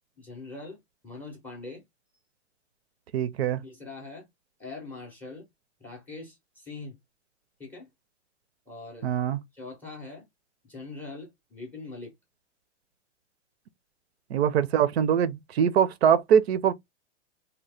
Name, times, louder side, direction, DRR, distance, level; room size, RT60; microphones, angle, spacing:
voice 1, 0.2-1.9 3.6-4.3 4.6-5.5 5.8-7.0 7.6-7.9 8.7-9.1 9.5-10.3 10.6-12.1, left 3 dB, 5° left, 0.5 m, -42 dB
voice 2, 3.1-3.6 9.0-9.4 14.3-16.7, right 8 dB, 60° right, 0.5 m, -23 dB
2.8 x 2.1 x 3.2 m
hypercardioid pair, 155°, 35 cm